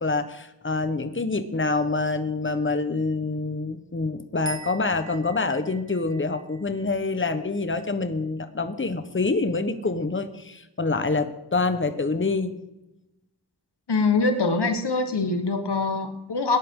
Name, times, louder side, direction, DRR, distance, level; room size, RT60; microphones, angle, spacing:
voice 1, 0.0-12.5, left 3 dB, 30° left, 10 dB, 1.1 m, -26 dB
sound 1, 4.5-7.8, right 5 dB, 45° right, 2.0 m, -43 dB
voice 2, 13.9-16.6, left 3 dB, 85° left, 7 dB, 1.4 m, -24 dB
18.0 x 10.5 x 3.8 m, 0.92 s
wide cardioid pair, 40°, 39 cm